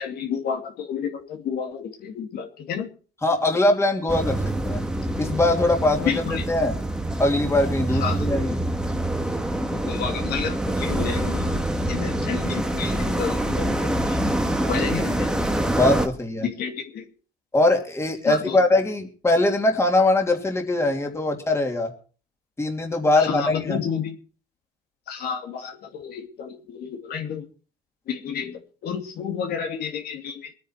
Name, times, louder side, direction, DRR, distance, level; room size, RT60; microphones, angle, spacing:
voice 1, 0.0-2.9 6.0-6.4 8.0-8.2 9.7-14.2 14.7-15.4 16.4-17.1 18.3-18.6 23.1-24.2 25.1-27.5 28.1-30.5, left 7 dB, 70° left, 3 dB, 2.7 m, -31 dB
voice 2, 3.2-4.8 5.2-6.7 7.2-8.6 14.6-14.8 15.7-16.5 17.5-21.9 22.6-23.8, left 2 dB, 15° left, 2 dB, 2.9 m, -22 dB
sound 1, 4.1-16.1, right 1 dB, 5° right, 1.5 m, -25 dB
22.5 x 9.5 x 4.4 m, 0.39 s
cardioid pair, 110°, 17 cm